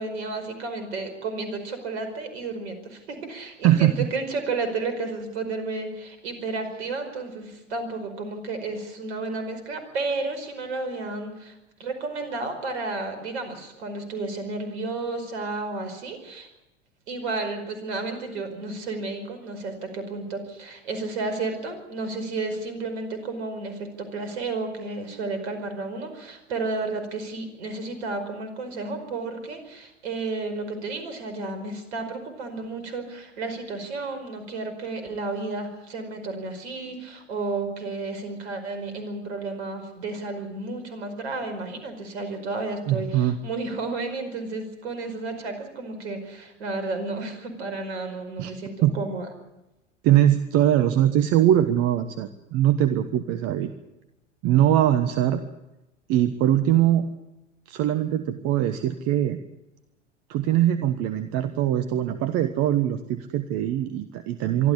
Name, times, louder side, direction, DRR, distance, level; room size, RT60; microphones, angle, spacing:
voice 1, 0.0-11.5 11.8-16.5 17.1-49.3, right 3 dB, 60° right, 8 dB, 5.1 m, -32 dB
voice 2, 3.6-4.1 42.9-43.4 48.4-48.5 48.8-48.9 50.0-53.7 54.4-55.4 56.1-57.1 57.7-59.4 60.3-64.7, right 12 dB, 40° right, 10 dB, 1.3 m, -22 dB
24.5 x 13.0 x 9.8 m, 0.95 s
figure-of-eight pair, 85°, 37 cm